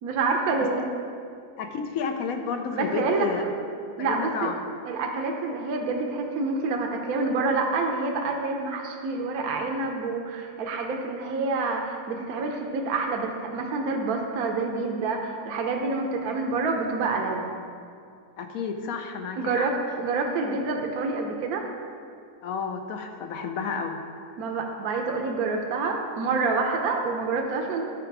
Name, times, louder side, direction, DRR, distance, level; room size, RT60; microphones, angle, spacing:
voice 1, 0.0-0.9 2.7-3.3 4.0-4.5 4.9-17.5 19.3-21.7 24.4-27.9, right 3 dB, 70° right, 2 dB, 1.2 m, -27 dB
voice 2, 1.6-3.4 4.0-4.6 18.4-19.7 22.4-24.0, left 5 dB, 65° left, 6 dB, 1.1 m, -31 dB
11.5 x 5.0 x 4.6 m, 2.3 s
omnidirectional pair, 1.7 m